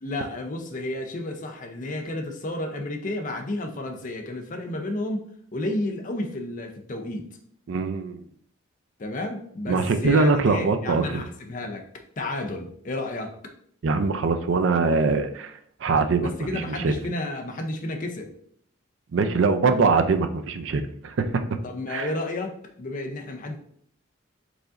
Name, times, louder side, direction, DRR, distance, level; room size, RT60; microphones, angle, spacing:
voice 1, 0.0-5.2 5.5-7.2 9.0-11.9 12.2-13.3 16.2-18.3 21.6-23.6, left 2 dB, 40° left, 4 dB, 0.5 m, -31 dB
voice 2, 7.7-8.2 9.7-11.2 13.8-15.5 15.8-16.9 19.1-21.4 21.9-22.1, right 4 dB, 65° right, 8 dB, 0.4 m, -23 dB
4.9 x 3.8 x 2.5 m, 0.64 s
head